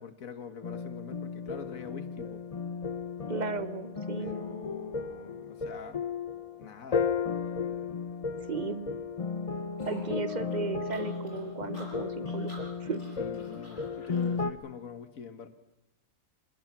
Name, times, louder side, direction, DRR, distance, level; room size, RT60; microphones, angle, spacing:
voice 1, 0.0-2.4 4.2-6.0 6.6-7.1 7.8-7.9 13.2-15.5, left 6 dB, 65° left, 9 dB, 1.8 m, -44 dB
sound 1, 0.6-14.5, left 5 dB, 30° left, 0.7 m, -34 dB
voice 2, 3.3-4.3 8.5-9.0 9.9-12.5 12.8-13.0, right 4 dB, 35° right, 13 dB, 0.8 m, -35 dB
sound 2, 9.8-14.3, equal, 50° left, 5.7 m, -52 dB
26.0 x 20.5 x 6.0 m, 0.95 s
omnidirectional pair, 1.5 m